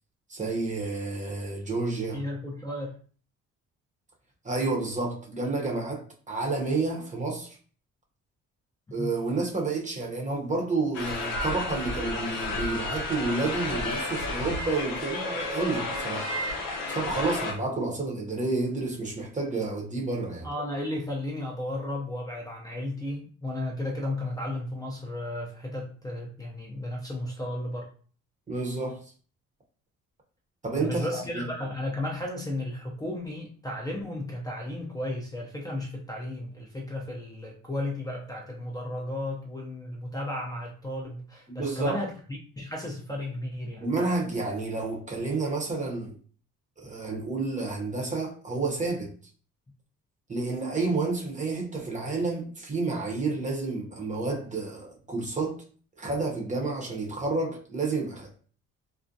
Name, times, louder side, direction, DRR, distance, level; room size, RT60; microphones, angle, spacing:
voice 1, 0.3-2.2 4.4-7.6 8.9-16.3 16.9-20.5 28.5-29.0 30.6-31.4 41.5-42.0 43.8-46.1 46.8-49.1 50.3-55.6 56.0-58.3, right 3 dB, 25° right, 0.7 m, -30 dB
voice 2, 2.1-3.0 9.0-9.1 20.4-27.9 30.8-43.9, left 1 dB, 15° left, 0.5 m, -34 dB
sound 1, 10.9-17.5, left 2 dB, 85° left, 0.7 m, -32 dB
2.4 x 2.1 x 2.6 m
cardioid pair, 90°, 30 cm